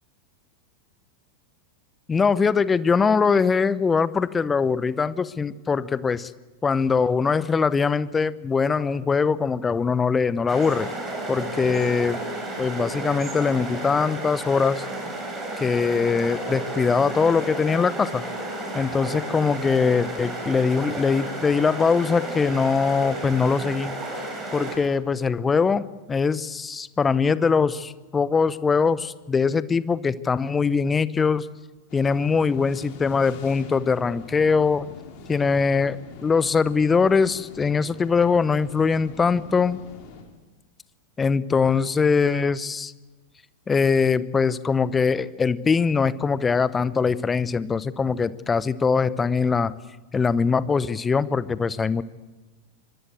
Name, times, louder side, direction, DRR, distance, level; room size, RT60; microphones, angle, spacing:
voice 1, 2.1-6.3 6.6-10.9 11.3-12.2 12.6-14.8 15.6-18.2 18.7-23.9 24.5-31.5 31.9-34.9 35.3-39.8 41.2-42.9 43.7-49.7 50.1-52.0, left 5 dB, 15° left, 18 dB, 0.9 m, -22 dB
sound 1, 10.5-24.8, right 2 dB, 15° right, 7.9 m, -32 dB
sound 2, 31.9-40.2, left 4 dB, 45° left, 5.1 m, -44 dB
25.5 x 22.5 x 7.9 m, 1.2 s
figure-of-eight pair, 90°, 0 cm